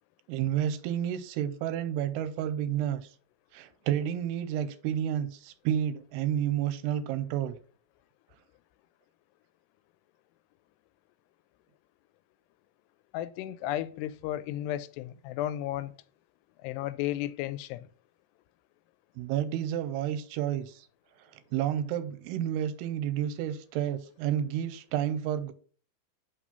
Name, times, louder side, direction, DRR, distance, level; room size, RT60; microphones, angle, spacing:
voice 1, 0.3-3.1 3.5-7.6 19.2-20.9 21.3-25.5, right 10 dB, 85° right, 2.7 m, -30 dB
voice 2, 13.1-15.9 16.6-17.9, left 13 dB, 85° left, 2.6 m, -33 dB
5.7 x 4.9 x 5.5 m
omnidirectional pair, 4.7 m